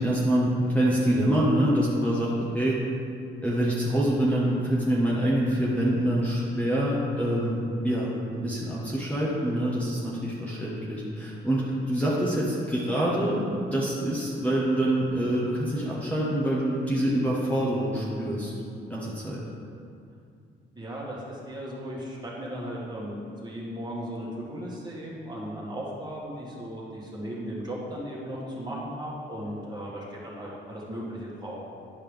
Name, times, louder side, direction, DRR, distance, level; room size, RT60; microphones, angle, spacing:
voice 1, 0.0-2.8 3.4-18.5 18.9-19.4, right 1 dB, 5° left, -7 dB, 1.4 m, -26 dB
voice 2, 20.8-31.6, equal, 20° right, -5 dB, 2.0 m, -36 dB
11.0 x 5.6 x 3.5 m, 2.4 s
cardioid pair, 90°, 20 cm